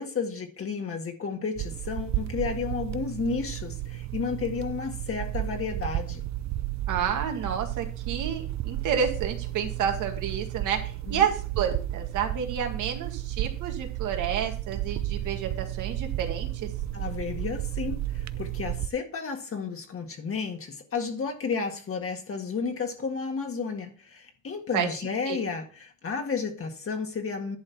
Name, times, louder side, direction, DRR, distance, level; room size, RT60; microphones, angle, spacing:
voice 1, 0.0-6.3 11.1-11.2 16.9-27.6, left 5 dB, 45° left, 1.8 m, -32 dB
sound 1, 1.6-18.9, right 14 dB, 65° right, 0.6 m, -33 dB
voice 2, 6.9-16.7 24.7-24.9 25.3-25.4, right 8 dB, 85° right, 2.1 m, -30 dB
11.0 x 4.0 x 7.1 m
cardioid pair, 90°, 30 cm